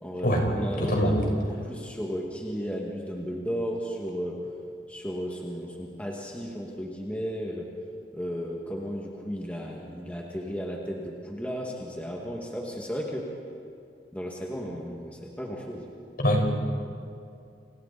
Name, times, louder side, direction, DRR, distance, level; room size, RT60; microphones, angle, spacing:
voice 1, 0.0-4.4 4.9-7.7 8.1-13.3 14.1-15.8, equal, 10° left, -2 dB, 2.2 m, -34 dB
voice 2, 0.8-1.2 16.2-16.6, equal, 55° left, 1 dB, 5.1 m, -23 dB
30.0 x 27.0 x 4.3 m, 2.5 s
head